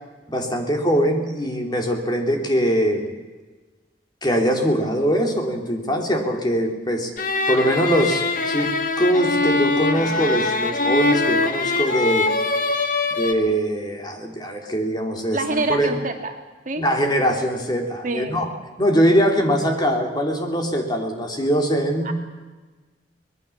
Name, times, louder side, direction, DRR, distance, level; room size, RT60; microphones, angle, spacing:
voice 1, 0.3-3.1 4.2-7.1 7.5-12.3 13.2-15.9 16.8-18.5 18.8-22.1, equal, 25° left, 3 dB, 3.1 m, -22 dB
sound 1, 7.2-13.3, left 3 dB, 50° left, 1.9 m, -22 dB
voice 2, 15.3-16.3 16.7-16.8 18.0-18.4 22.0-22.1, right 2 dB, 45° right, 5 dB, 2.3 m, -26 dB
24.5 x 20.0 x 7.1 m, 1.3 s
head